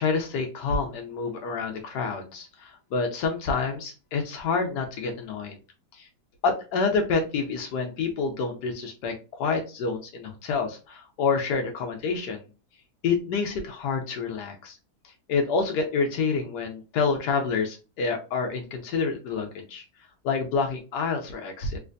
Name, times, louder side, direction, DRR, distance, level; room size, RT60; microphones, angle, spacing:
voice 1, 0.0-5.6 6.0-6.1 6.4-12.4 13.0-14.8 15.3-19.8 20.2-21.8, left 4 dB, 85° left, 3 dB, 1.2 m, -28 dB
3.3 x 3.1 x 2.5 m, 0.32 s
omnidirectional pair, 1.7 m